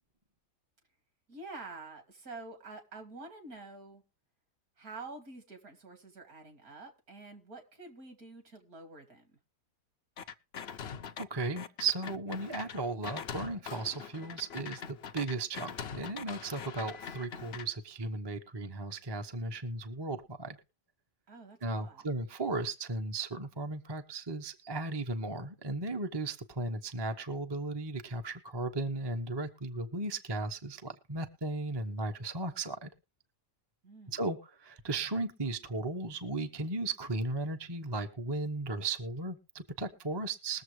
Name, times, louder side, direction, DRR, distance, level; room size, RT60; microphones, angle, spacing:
voice 1, 1.3-4.0 4.8-9.4 21.3-22.0 33.8-34.2, right 3 dB, 60° right, 5 dB, 2.9 m, -48 dB
sound 1, 10.2-11.2 11.6-17.7, left 7 dB, 55° left, 0.7 m, -43 dB
voice 2, 11.2-20.6 21.6-32.9 34.1-40.6, right 2 dB, 20° right, 6 dB, 0.7 m, -36 dB
21.5 x 7.1 x 3.1 m, 0.30 s
omnidirectional pair, 1.8 m